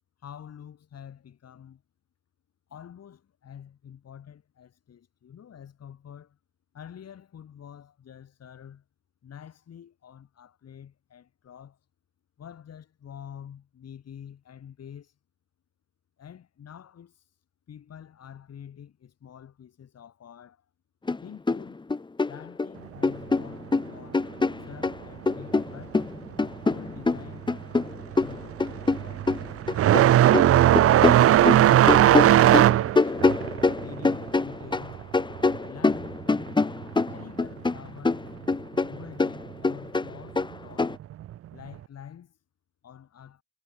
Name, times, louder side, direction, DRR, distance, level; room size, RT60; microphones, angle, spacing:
voice 1, 0.2-1.8 2.7-6.4 6.7-8.8 9.2-11.8 12.4-15.1 16.2-17.3 17.7-20.7 21.2-21.8 22.2-24.3 24.6-26.0 26.7-27.5 28.2-30.9 31.5-35.0 35.6-36.2 37.1-38.3 38.8-41.0 41.5-42.4 42.8-43.4, left 9 dB, 55° left, 3.6 m, -47 dB
sound 1, 21.1-21.2 21.5-22.7 23.0-25.0 25.3-30.0 30.3-34.9 35.1-37.8 38.0-40.9, left 3 dB, 15° left, 0.8 m, -25 dB
sound 2, 27.2-27.5 27.8-36.1 36.4-37.5 38.4-38.5 39.4-39.5 41.2-41.3, right 12 dB, 50° right, 0.5 m, -19 dB
cardioid pair, 90°, 30 cm